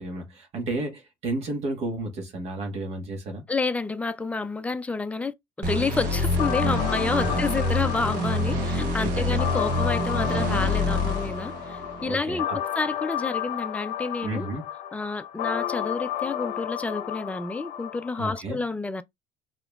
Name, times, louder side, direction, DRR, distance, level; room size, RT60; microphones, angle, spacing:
voice 1, 0.0-3.4 7.1-7.7 9.0-9.4 12.0-12.6 14.2-14.6 18.2-18.6, right 2 dB, 50° right, 1.4 m, -32 dB
voice 2, 3.5-14.5 14.9-19.0, left 3 dB, 10° left, 0.4 m, -29 dB
sound 1, 5.6-12.1, left 2 dB, 70° right, 1.2 m, -26 dB
sound 2, 6.4-18.4, left 11 dB, 65° left, 0.7 m, -32 dB
4.8 x 2.9 x 2.3 m
supercardioid pair, 110°, 14 cm